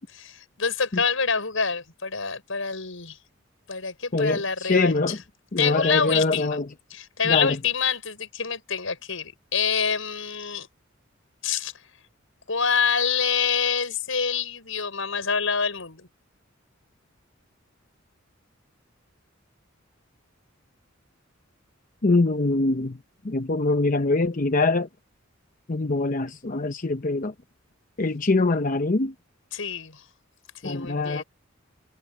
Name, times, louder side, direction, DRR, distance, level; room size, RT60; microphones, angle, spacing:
voice 1, 0.0-3.2 3.7-5.2 5.6-6.6 6.9-10.7 11.4-11.7 12.5-16.1 29.5-30.0 30.6-31.2, left 6 dB, 80° left, 5.6 m, -26 dB
voice 2, 4.1-5.2 5.5-6.6 7.3-7.6 22.0-23.0 23.2-24.9 25.7-27.3 28.0-29.1 30.6-31.2, left 3 dB, 40° left, 0.8 m, -23 dB
head